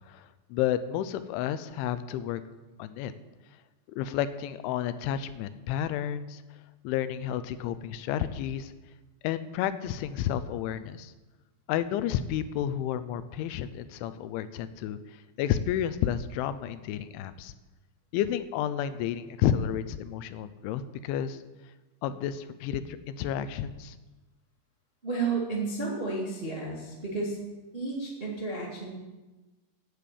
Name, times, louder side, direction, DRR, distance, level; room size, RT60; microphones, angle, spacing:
voice 1, 0.1-2.4 2.8-3.1 3.9-6.4 6.8-8.7 9.2-11.1 11.7-15.0 15.4-17.5 18.1-21.4 22.0-24.0, left 10 dB, 85° left, 13 dB, 3.1 m, -31 dB
voice 2, 25.0-27.4 27.7-28.9, right 3 dB, 30° right, -4 dB, 1.0 m, -32 dB
10.5 x 9.4 x 8.4 m, 1.2 s
omnidirectional pair, 5.4 m